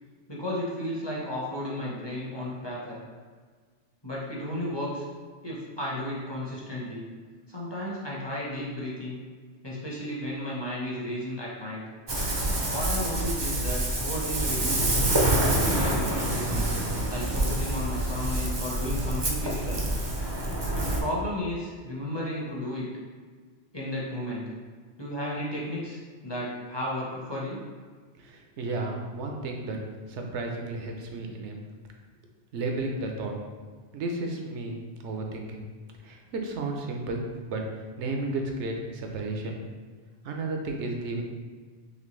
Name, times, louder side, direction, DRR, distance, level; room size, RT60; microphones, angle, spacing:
voice 1, 0.3-3.0 4.0-5.0 5.4-7.0 7.5-9.2 9.6-11.8 12.7-15.1 15.7-16.6 17.1-19.8 20.7-22.9 23.7-24.4 25.0-27.6, left 1 dB, 25° left, -5 dB, 0.7 m, -33 dB
Ocean, 12.1-21.0, right 1 dB, 35° right, 0.5 m, -27 dB
voice 2, 28.2-29.8 30.1-31.6 32.5-33.3 33.9-35.6 36.0-37.2 37.5-37.6 38.0-39.6 40.2-41.2, right 2 dB, 75° right, 2 dB, 0.9 m, -33 dB
4.2 x 3.3 x 3.1 m, 1.5 s
omnidirectional pair, 1.2 m